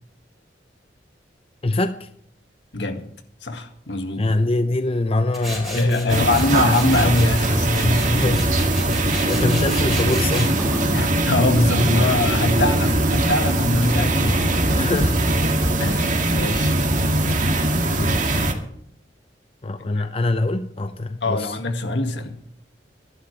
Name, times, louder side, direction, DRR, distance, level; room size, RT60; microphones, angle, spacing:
voice 1, 1.6-2.1 4.2-6.3 8.1-8.5 8.9-10.6 14.8-15.2 16.0-16.2 18.0-18.2 19.6-21.6, left 2 dB, 30° left, 0.6 m, -23 dB
voice 2, 2.7-3.0 3.4-4.2 5.7-8.0 10.9-14.7 15.8-16.7 17.2-17.3 20.0-20.1 21.2-22.4, left 2 dB, 75° left, 2.0 m, -22 dB
Tools, 5.3-14.2, equal, ahead, 4.5 m, -36 dB
sound 1, 6.1-18.5, right 1 dB, 45° right, 1.9 m, -21 dB
24.0 x 11.5 x 3.4 m
head